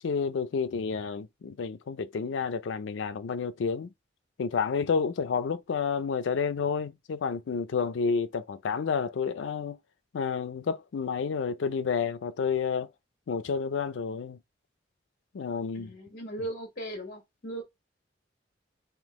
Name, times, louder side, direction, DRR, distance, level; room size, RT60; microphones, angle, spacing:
voice 1, 0.0-3.9 4.4-9.8 10.1-12.9 13.3-14.4 15.3-15.9, left 5 dB, 80° left, 0.4 m, -30 dB
voice 2, 15.7-17.6, right 1 dB, 50° left, 1.1 m, -38 dB
3.7 x 2.8 x 3.6 m
head